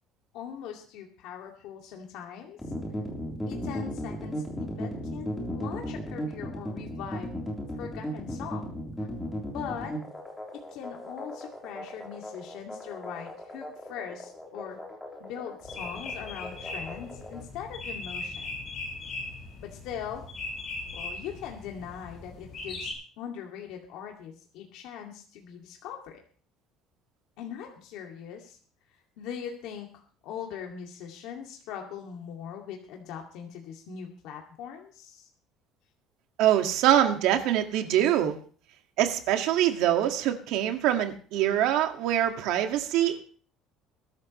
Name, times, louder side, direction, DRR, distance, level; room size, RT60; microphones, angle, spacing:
voice 1, 0.3-2.6 3.5-7.3 7.8-9.1 9.5-9.9 10.7-14.8 15.2-18.6 19.6-20.2 20.9-26.2 27.4-28.6 29.2-29.9 30.2-35.3, left 8 dB, 65° left, 0 dB, 2.4 m, -41 dB
sound 1, 2.6-17.4, equal, 5° left, 3.8 m, -36 dB
sound 2, 15.6-22.9, left 3 dB, 30° left, 7.8 m, -39 dB
voice 2, 36.4-38.4 39.0-43.2, right 11 dB, 65° right, 5 dB, 2.0 m, -24 dB
22.0 x 12.5 x 3.2 m, 0.42 s
cardioid pair, 175°, 0 cm